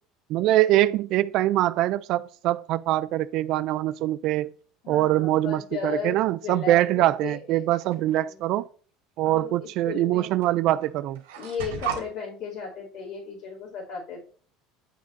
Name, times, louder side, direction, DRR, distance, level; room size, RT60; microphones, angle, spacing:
voice 1, 0.3-4.5 4.9-8.7 9.2-11.2, right 14 dB, 60° right, 0.3 m, -23 dB
voice 2, 4.8-7.6 8.2-8.4 9.2-10.3 11.4-14.2, left 6 dB, 70° left, 2.9 m, -35 dB
sound 1, 7.7-8.2 9.4-9.5 10.4-10.5 10.8-12.1, right 8 dB, 90° right, 1.3 m, -34 dB
9.3 x 6.2 x 2.6 m
supercardioid pair, 100°, 0 cm